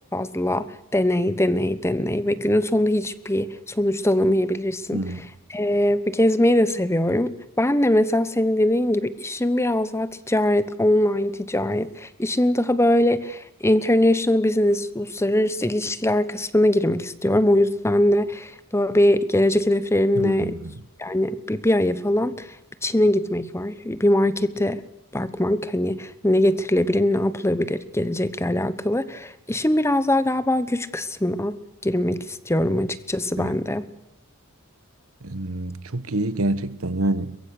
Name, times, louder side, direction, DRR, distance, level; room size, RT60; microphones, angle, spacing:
voice 1, 0.1-5.0 5.5-20.6 21.0-22.5 22.8-24.8 25.1-33.9, left 1 dB, 15° left, 1.1 m, -22 dB
voice 2, 4.9-5.2 20.1-20.8 33.4-33.6 35.2-37.4, right 1 dB, 80° right, 1.4 m, -27 dB
23.0 x 22.0 x 6.6 m
head